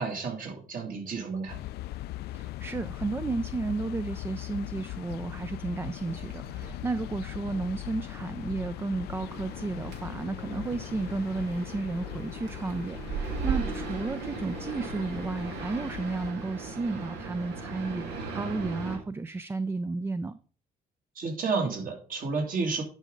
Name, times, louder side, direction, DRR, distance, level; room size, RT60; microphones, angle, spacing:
voice 1, 0.0-1.6 21.1-22.8, right 4 dB, 55° right, 2 dB, 2.5 m, -31 dB
sound 1, 1.5-16.3, left 16 dB, 70° left, 0.4 m, -40 dB
voice 2, 2.3-20.4, right 3 dB, 15° right, 13 dB, 0.3 m, -33 dB
sound 2, 6.0-19.0, right 5 dB, 85° right, 2.0 m, -38 dB
10.5 x 5.2 x 3.8 m, 0.41 s
cardioid pair, 110°, 17 cm